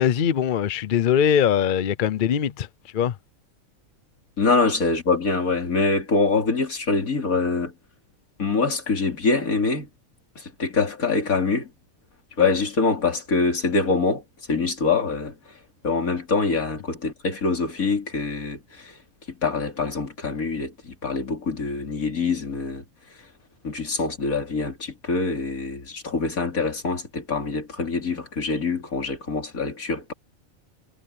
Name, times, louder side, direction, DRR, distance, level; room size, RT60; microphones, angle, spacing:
voice 1, 0.0-3.2, left 8 dB, 50° left, 0.7 m, -22 dB
voice 2, 4.4-7.7 8.4-9.9 10.4-11.7 12.4-14.2 14.5-15.4 15.8-19.0 19.3-22.8 23.6-30.1, left 4 dB, 85° left, 3.5 m, -24 dB
omnidirectional pair, 1.4 m